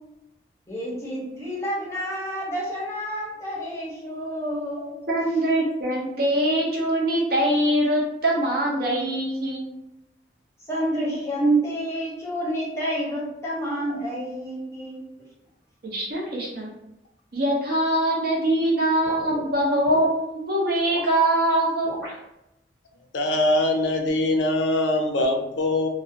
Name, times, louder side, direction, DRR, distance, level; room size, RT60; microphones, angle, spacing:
voice 1, 0.7-5.0 10.7-15.0, right 1 dB, 15° left, -6 dB, 0.7 m, -28 dB
voice 2, 5.1-9.7 15.8-16.7 17.3-21.9, right 1 dB, 55° right, -3 dB, 0.6 m, -23 dB
sound 1, 19.0-20.1 20.8-21.2 21.8-22.2, equal, 75° right, 1.2 m, -37 dB
voice 3, 23.1-25.9, left 1 dB, 75° left, 3 dB, 0.4 m, -22 dB
2.4 x 2.1 x 2.7 m, 0.87 s
head